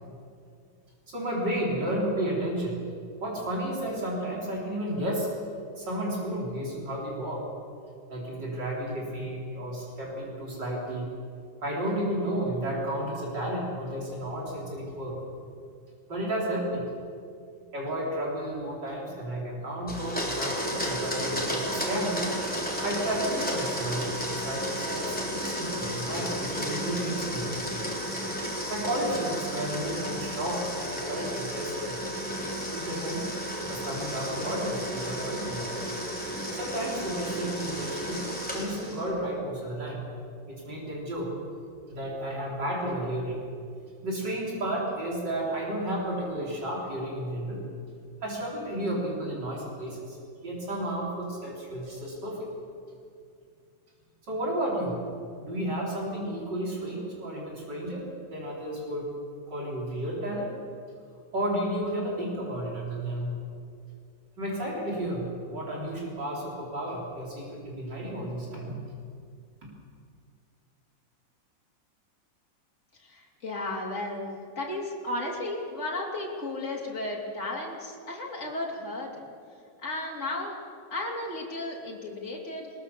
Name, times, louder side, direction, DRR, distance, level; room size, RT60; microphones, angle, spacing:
voice 1, 1.1-2.8 3.2-5.3 5.8-7.5 8.1-11.1 11.6-15.2 16.1-16.8 17.7-22.2 22.8-27.7 28.7-32.0 32.7-33.3 33.7-35.7 36.5-40.0 40.5-41.3 41.9-43.4 44.0-47.7 48.2-50.2 50.4-52.5 54.3-55.0 55.4-59.1 59.5-60.5 61.3-63.3 64.4-68.8, right 1 dB, 60° right, -3 dB, 4.6 m, -32 dB
Domestic sounds home sounds, 19.9-39.1, equal, 5° left, 3.9 m, -33 dB
voice 2, 73.0-79.2 79.8-80.6 80.9-82.7, left 2 dB, 35° left, -2 dB, 3.6 m, -34 dB
21.0 x 20.0 x 7.0 m, 2.3 s
omnidirectional pair, 2.1 m